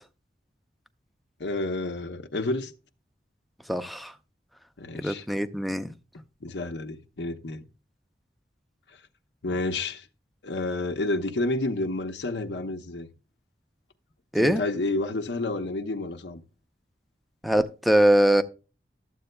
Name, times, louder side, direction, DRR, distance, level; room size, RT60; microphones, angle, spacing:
voice 1, 1.4-2.7 4.8-5.2 6.4-7.6 9.4-10.1 10.4-13.1 14.3-16.4, left 2 dB, 85° left, 0.8 m, -30 dB
voice 2, 3.7-4.1 5.0-5.9 14.3-14.6 17.4-18.4, right 1 dB, ahead, 0.5 m, -22 dB
13.0 x 7.8 x 2.2 m
head